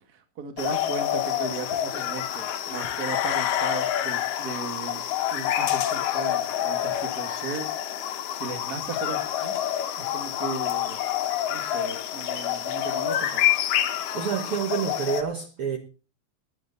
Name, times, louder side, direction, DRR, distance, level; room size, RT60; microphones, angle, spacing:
voice 1, 0.1-5.0 5.3-7.7 8.4-9.5 10.0-11.0 11.5-13.4, right 4 dB, 45° right, 1.3 m, -36 dB
sound 1, 0.6-15.2, left 11 dB, 65° left, 2.4 m, -27 dB
voice 2, 14.1-15.8, right 7 dB, 70° right, 1.3 m, -28 dB
21.5 x 8.4 x 4.0 m
omnidirectional pair, 4.7 m